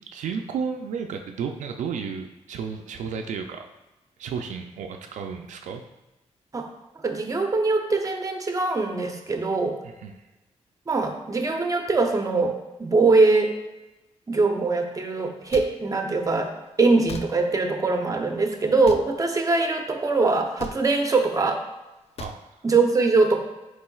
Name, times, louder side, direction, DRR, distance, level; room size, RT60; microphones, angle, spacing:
voice 1, 0.1-3.7 4.2-5.8 9.8-10.1 22.2-22.5, right 6 dB, 80° right, 4 dB, 0.4 m, -32 dB
voice 2, 7.0-9.8 10.9-12.5 12.8-13.5 14.3-16.5 16.8-21.6 22.6-23.4, right 3 dB, 25° right, 4 dB, 0.6 m, -22 dB
sound 1, 15.5-15.7 17.1-17.3 18.8-19.1 20.6-20.8 22.2-22.4, left 5 dB, 55° left, 0.4 m, -36 dB
4.6 x 4.2 x 2.3 m, 1.0 s
cardioid pair, 70°, 12 cm